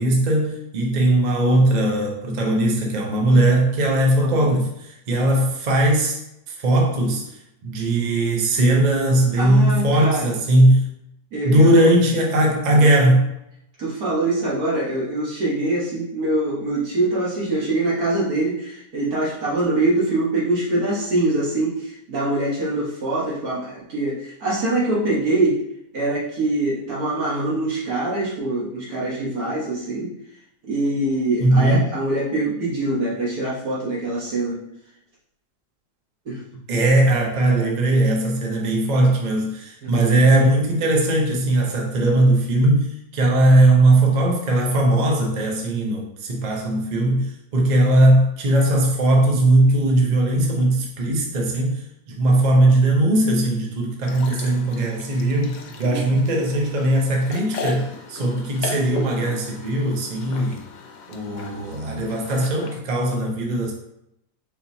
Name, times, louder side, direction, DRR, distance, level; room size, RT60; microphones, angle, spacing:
voice 1, 0.0-6.2 6.5-7.2 7.6-10.8 11.4-13.3 31.4-31.9 36.7-51.8 52.1-60.6 61.1-63.7, right 1 dB, 45° right, -1 dB, 0.5 m, -19 dB
voice 2, 9.4-10.3 11.3-11.9 12.8-12.9 13.8-25.6 25.9-30.1 30.7-34.6 36.2-36.4 39.8-40.0 55.8-56.1, right 2 dB, 60° right, -5 dB, 1.7 m, -24 dB
sound 1, 54.0-62.8, left 5 dB, 80° left, 1.2 m, -37 dB
4.6 x 3.6 x 2.7 m, 0.80 s
omnidirectional pair, 1.8 m